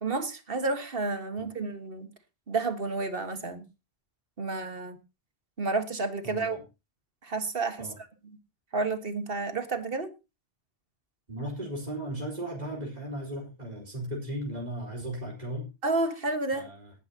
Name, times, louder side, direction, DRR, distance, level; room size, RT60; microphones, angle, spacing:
voice 1, 0.0-2.1 2.5-3.6 4.4-5.0 5.6-6.6 7.2-7.9 8.7-10.1 15.8-16.7, right 3 dB, 60° right, 1.8 m, -30 dB
voice 2, 6.2-6.6 7.8-8.0 11.3-15.7 16.5-16.9, right 1 dB, 40° right, 4.5 m, -36 dB
18.5 x 10.5 x 2.9 m
omnidirectional pair, 1.1 m